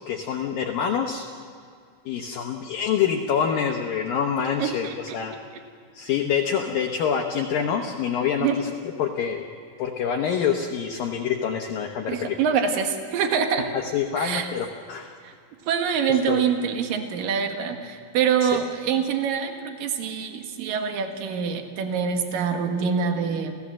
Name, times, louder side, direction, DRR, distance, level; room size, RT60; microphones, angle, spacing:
voice 1, 0.1-1.3 2.1-4.9 5.1-5.3 5.9-8.7 9.0-9.4 9.8-12.4 13.7-15.1 16.3-16.4 18.4-18.5, left 7 dB, 70° left, 2 dB, 2.4 m, -26 dB
voice 2, 4.6-5.2 8.4-8.6 12.1-13.7 14.2-14.5 15.2-15.3 15.7-23.6, right 7 dB, 60° right, 5 dB, 2.9 m, -25 dB
30.0 x 15.5 x 7.5 m, 2.3 s
omnidirectional pair, 5.1 m